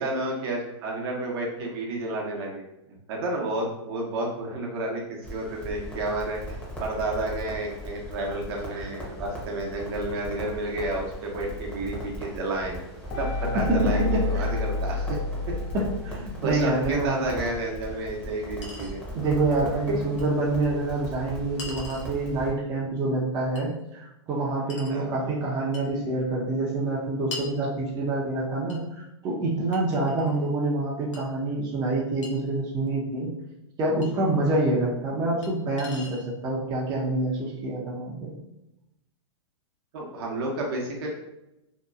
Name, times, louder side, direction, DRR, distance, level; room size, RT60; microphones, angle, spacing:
voice 1, 0.0-12.8 13.2-13.3 13.5-15.2 15.5-15.6 16.4-19.0 19.9-20.0 24.9-25.1 39.9-41.2, right 2 dB, 55° right, -1 dB, 0.8 m, -31 dB
Crackle, 5.2-22.5, equal, 10° left, 0.8 m, -39 dB
sound 1, 13.1-16.9, left 3 dB, 50° left, 0.4 m, -29 dB
voice 2, 13.7-14.6 15.7-17.2 19.1-33.3 33.8-38.3, right 2 dB, 25° right, -4 dB, 0.6 m, -27 dB
Chink clink, 17.6-17.7 18.6-19.0 20.2-20.3 21.6-22.1 23.6-23.7 24.7-25.0 25.7-25.9 27.3-27.5 28.7-28.8 29.7-30.5 31.1-31.2 32.2-32.3 34.0-34.1 35.4-35.5 35.8-36.3, left 3 dB, 85° left, 0.7 m, -40 dB
2.8 x 2.2 x 2.3 m, 0.89 s
hypercardioid pair, 125°, 15 cm